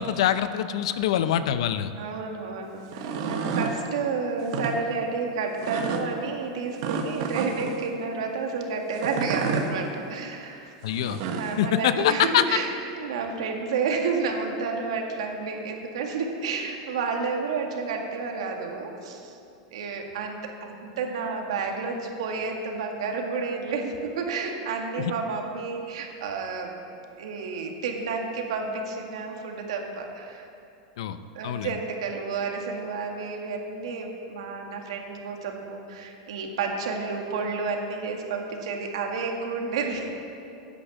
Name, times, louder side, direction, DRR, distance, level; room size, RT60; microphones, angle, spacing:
voice 1, 0.0-1.9 10.8-11.2 11.6-12.6 25.0-25.1 31.0-31.2 31.4-31.7, left 10 dB, 70° left, 12 dB, 0.6 m, -24 dB
voice 2, 2.0-10.7 11.3-12.7 13.0-19.3 19.7-26.7 27.2-30.5 31.3-40.1, right 4 dB, 80° right, 2 dB, 1.9 m, -30 dB
sound 1, 2.8-3.8 4.4-4.7 5.6-6.0 6.8-7.8 8.9-9.7 10.9-11.5, right 5 dB, 55° right, 1.1 m, -30 dB
10.5 x 8.6 x 7.3 m, 2.7 s
supercardioid pair, 160°, 3 cm